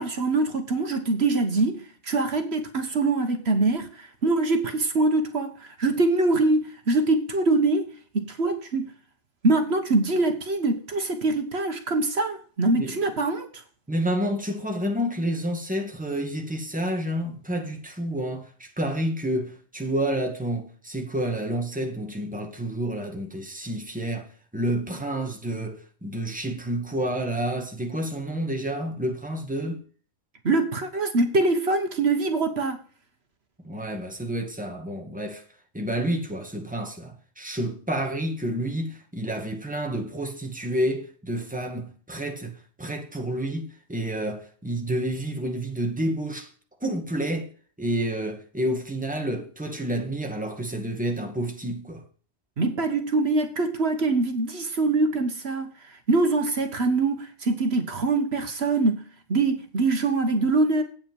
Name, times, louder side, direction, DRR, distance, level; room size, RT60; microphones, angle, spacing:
voice 1, 0.0-8.9 9.4-13.5 30.4-32.8 52.6-55.7 56.1-59.0 59.3-60.8, right 3 dB, 65° right, 1.5 m, -24 dB
voice 2, 13.9-24.3 24.5-29.8 33.6-35.4 35.7-46.5 46.8-47.5 47.8-52.0, right 1 dB, 5° right, 1.9 m, -29 dB
8.8 x 8.7 x 5.3 m
omnidirectional pair, 1.2 m